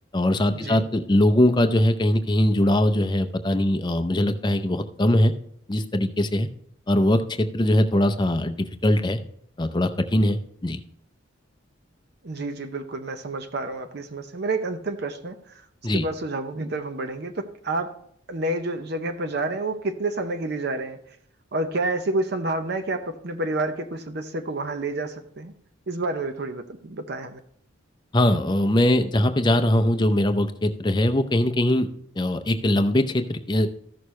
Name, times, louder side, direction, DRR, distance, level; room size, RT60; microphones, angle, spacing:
voice 1, 0.1-5.3 5.7-6.5 6.9-9.2 9.6-10.8 15.8-16.0 28.1-31.9 32.2-33.7, left 1 dB, 20° left, 8 dB, 0.5 m, -21 dB
voice 2, 12.2-15.6 15.9-17.9 18.3-21.0 21.5-25.5 25.9-27.4, right 2 dB, 50° right, 7 dB, 0.6 m, -29 dB
14.0 x 6.5 x 3.2 m, 0.69 s
head